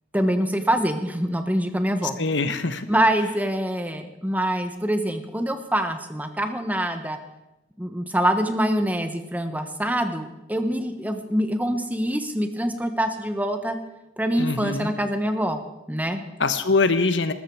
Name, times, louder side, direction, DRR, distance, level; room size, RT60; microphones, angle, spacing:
voice 1, 0.1-2.2 2.9-7.2 7.8-13.8 14.2-15.6 15.9-16.2, right 1 dB, 10° right, 7 dB, 1.2 m, -25 dB
voice 2, 2.2-2.9 14.4-14.9 16.4-17.3, left 3 dB, 80° left, 11 dB, 1.2 m, -23 dB
20.0 x 13.5 x 4.8 m, 0.93 s
head